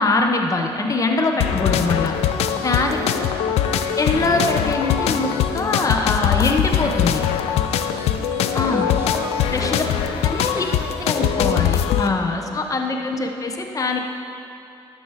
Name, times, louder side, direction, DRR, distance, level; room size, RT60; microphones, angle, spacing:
voice 1, 0.0-2.1 2.6-3.0 4.0-7.2 8.5-8.9 9.5-9.8 10.2-10.7 11.0-14.0, left 3 dB, 35° left, 4 dB, 0.9 m, -22 dB
sound 1, 1.4-12.1, left 9 dB, 85° left, 0.5 m, -22 dB
voice 2, 2.7-4.2 7.7-11.6 12.9-13.4, right 2 dB, 20° right, 4 dB, 1.0 m, -38 dB
12.0 x 7.0 x 4.8 m, 2.8 s
cardioid pair, 80°, 10 cm